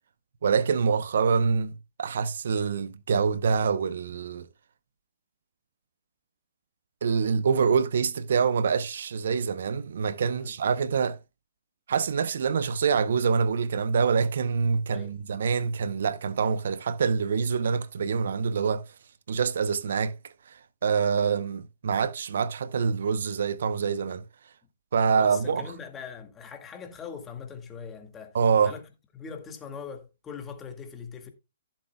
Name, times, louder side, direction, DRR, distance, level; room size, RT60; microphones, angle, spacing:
voice 1, 0.4-4.5 7.0-11.2 11.9-18.9 19.3-24.2 24.9-25.7 28.3-28.7, right 6 dB, 65° right, 0.7 m, -25 dB
voice 2, 25.2-28.4 28.6-28.8 29.1-31.3, left 6 dB, 15° left, 1.7 m, -41 dB
15.0 x 7.3 x 2.2 m
hypercardioid pair, 135°, 0 cm